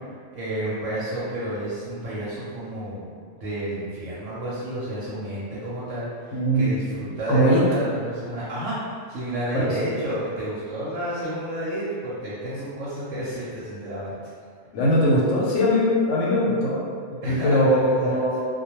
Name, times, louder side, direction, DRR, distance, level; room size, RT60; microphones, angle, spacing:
voice 1, 0.3-3.1 3.4-14.2 17.2-18.2, right 1 dB, 75° right, -9 dB, 1.0 m, -30 dB
voice 2, 6.3-6.7 7.3-7.6 9.6-9.7 14.7-16.8 17.3-18.5, equal, 85° left, -5 dB, 1.0 m, -20 dB
2.2 x 2.2 x 2.9 m, 2.1 s
omnidirectional pair, 1.3 m